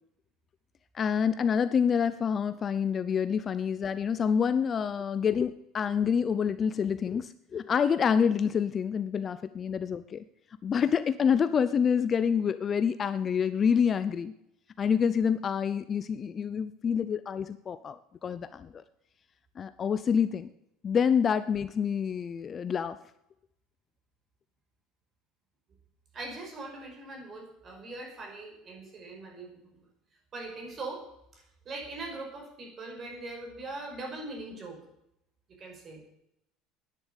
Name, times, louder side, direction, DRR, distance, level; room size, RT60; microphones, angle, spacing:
voice 1, 0.9-10.2 10.6-14.3 14.8-18.8 19.6-20.5 20.8-23.0, left 7 dB, 25° left, 12 dB, 0.6 m, -27 dB
voice 2, 26.1-29.9 30.3-31.1 31.3-34.8 35.6-36.0, right 2 dB, 30° right, 1 dB, 5.5 m, -41 dB
11.0 x 10.5 x 8.3 m, 0.80 s
cardioid pair, 150°, 0 cm